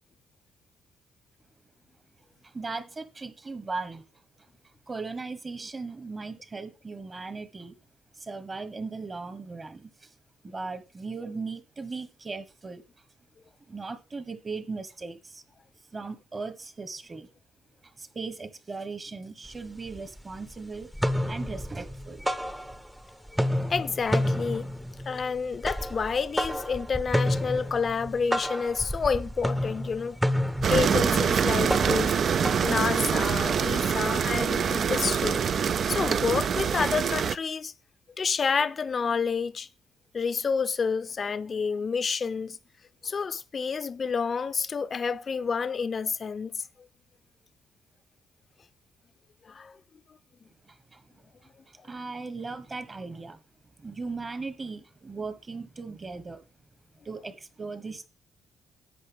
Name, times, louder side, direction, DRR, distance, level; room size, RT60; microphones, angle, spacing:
voice 1, 2.4-4.0 4.9-7.8 8.2-10.1 10.4-12.8 13.7-15.4 15.9-17.3 18.0-20.9 21.3-22.3 50.7-51.0 51.7-53.4 53.8-56.4 57.0-58.1, right 4 dB, 30° right, 1.3 m, -38 dB
sound 1, 19.5-19.6 19.9-20.5 20.8-23.0 23.3-33.4, equal, 5° right, 0.7 m, -30 dB
voice 2, 23.7-24.7 25.1-30.2 30.7-32.2 32.6-35.5 35.9-37.7 38.2-39.7 40.1-42.6 43.0-46.6 49.5-49.8, left 5 dB, 40° left, 0.6 m, -29 dB
sound 2, 30.6-37.3, right 7 dB, 55° right, 0.4 m, -25 dB
11.0 x 7.9 x 3.5 m
cardioid pair, 90°, 0 cm